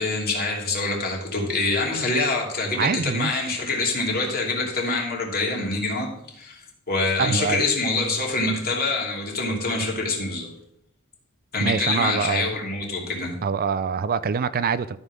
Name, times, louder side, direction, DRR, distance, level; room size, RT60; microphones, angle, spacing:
voice 1, 0.0-6.6 6.9-10.5 11.5-13.4, left 3 dB, 45° left, 2.8 m, -25 dB
voice 2, 2.8-3.5 7.2-7.7 11.6-12.6 13.4-15.0, right 6 dB, 45° right, 0.4 m, -25 dB
13.0 x 5.5 x 6.2 m
head